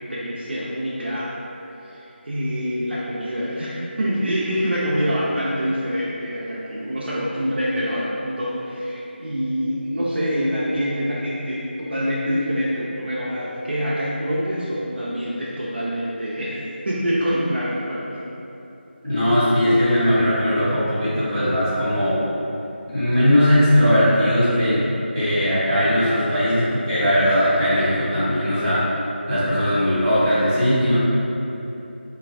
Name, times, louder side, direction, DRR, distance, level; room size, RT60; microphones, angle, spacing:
voice 1, 0.0-1.3 1.8-18.3, equal, 65° right, -7 dB, 0.5 m, -25 dB
voice 2, 19.0-22.3 22.9-24.8 25.1-28.8 29.3-30.9, equal, 20° right, -15 dB, 1.0 m, -19 dB
2.9 x 2.5 x 2.4 m, 2.9 s
figure-of-eight pair, 170°, 6 cm